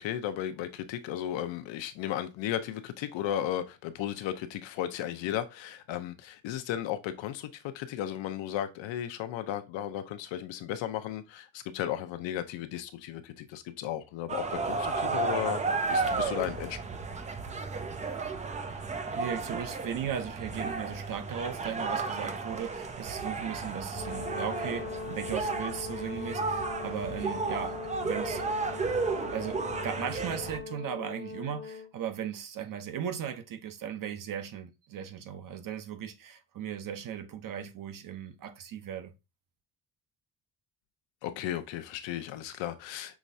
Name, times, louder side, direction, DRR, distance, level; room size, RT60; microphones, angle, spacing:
voice 1, 0.0-15.6 15.9-16.8 41.2-43.2, left 11 dB, 75° left, 0.8 m, -35 dB
sound 1, 14.3-30.6, right 4 dB, 20° right, 0.3 m, -33 dB
voice 2, 19.1-27.7 28.0-28.4 29.3-39.1, right 8 dB, 45° right, 0.8 m, -37 dB
Brass instrument, 23.9-31.9, left 5 dB, 25° left, 0.6 m, -40 dB
6.1 x 3.1 x 2.7 m
cardioid pair, 160°, 45 cm